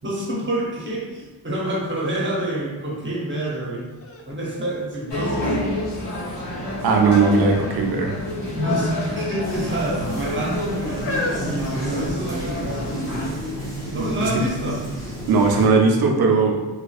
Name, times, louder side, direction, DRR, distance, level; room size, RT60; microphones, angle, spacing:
voice 1, 0.0-3.9 4.3-5.5 8.5-13.2 13.9-14.9, right 1 dB, 30° right, -4 dB, 0.8 m, -27 dB
sound 1, 3.5-3.6 4.0-5.5 6.1-6.6 7.5-7.8 8.1-8.3 9.1-9.8 10.5-12.5 13.3-13.4, left 2 dB, 35° left, 0.4 m, -33 dB
sound 2, 5.1-13.3, left 1 dB, 70° left, 1.1 m, -29 dB
voice 2, 6.8-8.2 13.9-14.3 15.3-16.5, right 4 dB, 60° right, 2 dB, 0.5 m, -18 dB
sound 3, 9.4-15.7, equal, 5° left, 1.1 m, -33 dB
2.5 x 2.2 x 2.3 m, 1.3 s
cardioid pair, 60°, 42 cm